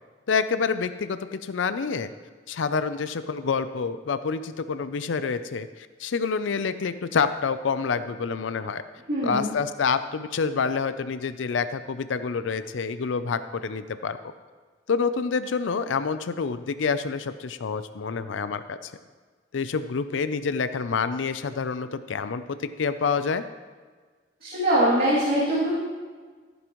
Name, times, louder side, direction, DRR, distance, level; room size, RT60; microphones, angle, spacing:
voice 1, 0.3-2.1 2.5-8.8 9.2-14.2 14.9-18.9 19.5-23.4, left 5 dB, 80° left, 12 dB, 0.5 m, -27 dB
voice 2, 9.1-9.5 24.4-25.8, right 1 dB, 55° right, -8 dB, 2.6 m, -22 dB
14.5 x 9.3 x 3.1 m, 1.5 s
head